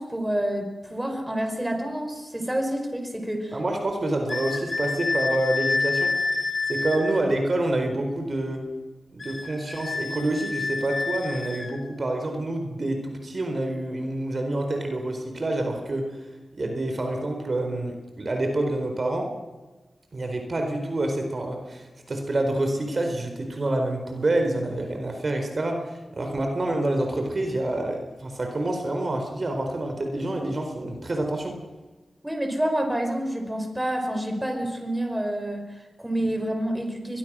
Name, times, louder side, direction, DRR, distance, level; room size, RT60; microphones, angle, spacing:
voice 1, 0.0-3.6 6.9-7.0 32.2-37.2, right 1 dB, 15° right, 5 dB, 5.4 m, -28 dB
voice 2, 3.5-6.2 6.7-8.7 9.1-16.3 16.5-19.3 20.1-31.6, right 1 dB, 50° right, 4 dB, 4.2 m, -27 dB
sound 1, 4.3-7.1 9.2-11.8, left 3 dB, 60° left, 4.4 m, -28 dB
22.5 x 22.0 x 6.3 m, 1.2 s
cardioid pair, 55°, 0 cm